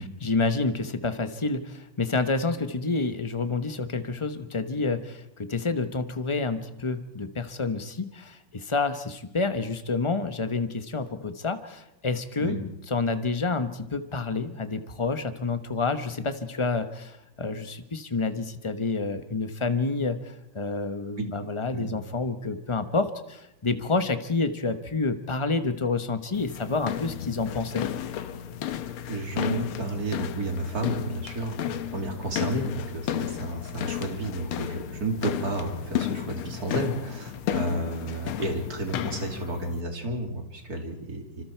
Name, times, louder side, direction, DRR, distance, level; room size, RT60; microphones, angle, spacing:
voice 1, 0.0-27.9, left 3 dB, 45° left, 9 dB, 0.4 m, -29 dB
sound 1, 26.3-39.8, left 11 dB, 75° left, 1.8 m, -33 dB
voice 2, 29.1-41.4, right 2 dB, 40° right, 3 dB, 3.2 m, -31 dB
26.0 x 25.5 x 4.5 m, 0.87 s
omnidirectional pair, 2.4 m